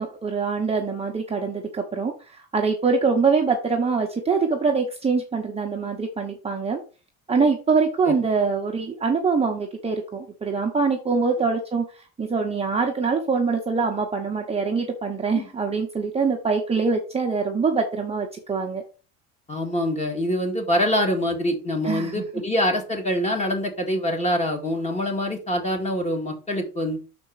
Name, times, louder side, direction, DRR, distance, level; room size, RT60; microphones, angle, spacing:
voice 1, 0.0-6.8 7.3-18.8 21.8-22.3, right 4 dB, 15° right, 1 dB, 0.9 m, -24 dB
voice 2, 19.5-27.0, equal, 15° left, 3 dB, 1.9 m, -25 dB
6.1 x 4.4 x 5.7 m, 0.35 s
cardioid pair, 130°, 38 cm